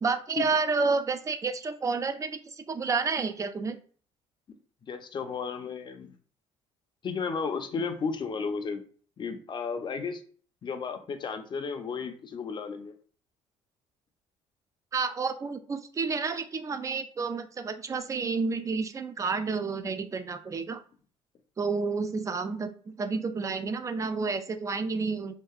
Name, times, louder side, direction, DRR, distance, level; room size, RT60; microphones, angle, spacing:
voice 1, 0.0-3.8 14.9-20.8 21.6-25.3, right 4 dB, 25° right, 9 dB, 0.4 m, -30 dB
voice 2, 4.8-6.1 7.0-8.8 9.2-10.2 10.6-12.9, left 5 dB, 40° left, 7 dB, 0.5 m, -33 dB
2.7 x 2.3 x 2.3 m, 0.44 s
supercardioid pair, 85°, 13 cm